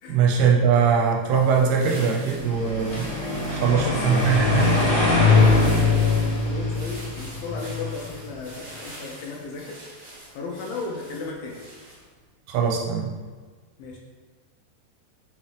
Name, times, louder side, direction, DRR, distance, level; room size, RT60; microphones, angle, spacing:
voice 1, 0.1-3.1 3.5-4.8 12.5-13.1, right 6 dB, 80° right, 0 dB, 2.5 m, -21 dB
sound 1, 1.2-12.2, right 1 dB, 55° right, 1.1 m, -44 dB
sound 2, 2.4-8.5, left 4 dB, 45° left, 1.7 m, -22 dB
voice 2, 3.6-9.8 10.3-11.6 13.8-14.0, left 3 dB, 80° left, -1 dB, 2.3 m, -35 dB
6.1 x 6.0 x 3.3 m, 1.4 s
omnidirectional pair, 4.8 m